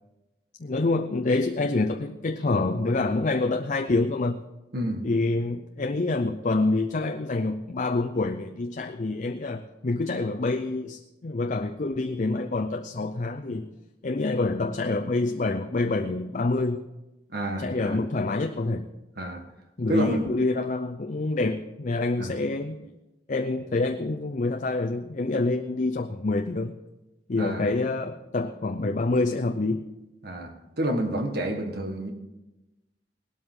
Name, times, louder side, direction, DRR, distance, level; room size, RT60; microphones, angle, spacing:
voice 1, 0.6-4.4 5.0-13.7 14.0-16.8 17.6-18.9 19.8-22.8 23.3-26.8 27.3-29.8, left 2 dB, 45° left, 5 dB, 0.6 m, -27 dB
voice 2, 4.7-5.1 17.3-18.0 19.2-19.4 19.9-20.2 22.2-22.3 27.4-27.7 30.2-32.1, right 1 dB, 60° right, 5 dB, 1.7 m, -29 dB
18.5 x 12.5 x 3.8 m, 0.99 s
head